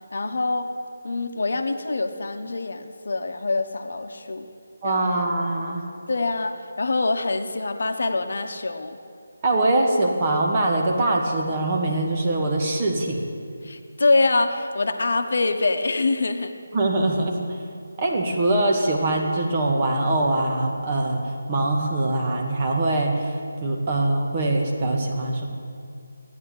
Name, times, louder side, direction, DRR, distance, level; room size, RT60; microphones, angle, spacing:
voice 1, 0.1-0.7 1.0-4.5 4.8-5.0 6.1-9.0 13.6-16.5, left 3 dB, 55° left, 7 dB, 1.2 m, -25 dB
voice 2, 4.8-5.8 9.4-13.2 16.7-17.6 18.0-21.2 21.5-23.3 23.6-25.5, right 2 dB, 30° right, 0 dB, 2.2 m, -23 dB
15.0 x 9.9 x 9.9 m, 2.4 s
figure-of-eight pair, 155°, 0 cm